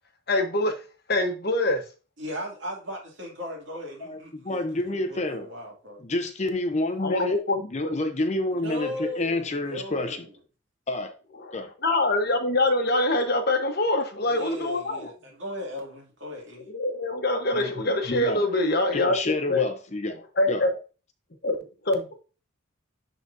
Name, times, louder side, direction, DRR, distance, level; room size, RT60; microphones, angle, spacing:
voice 1, 0.3-0.7 1.1-1.8 7.0-8.0 11.8-15.1 16.7-19.2 19.5-19.7 20.4-20.7 21.4-21.6 21.9-22.2, left 2 dB, 50° left, 1.0 m, -24 dB
voice 2, 2.2-6.0 8.5-10.3 14.2-16.6, left 1 dB, 60° right, 2.3 m, -37 dB
voice 3, 4.0-5.5 6.0-7.4 7.7-10.2 10.9-11.1 11.5-11.7 17.5-17.7 18.1-18.4 18.9-20.2 20.5-20.6, left 2 dB, 35° left, 0.7 m, -29 dB
11.0 x 3.9 x 2.6 m
head